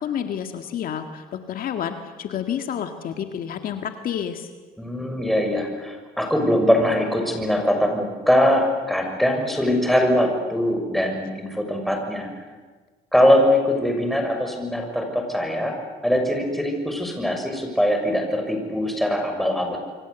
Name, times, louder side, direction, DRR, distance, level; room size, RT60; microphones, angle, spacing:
voice 1, 0.0-4.5, left 9 dB, 60° left, 6 dB, 1.9 m, -29 dB
voice 2, 4.8-12.3 13.1-15.8 16.0-19.8, equal, ahead, 2 dB, 6.5 m, -22 dB
27.0 x 25.0 x 8.2 m, 1.4 s
cardioid pair, 110°, 17 cm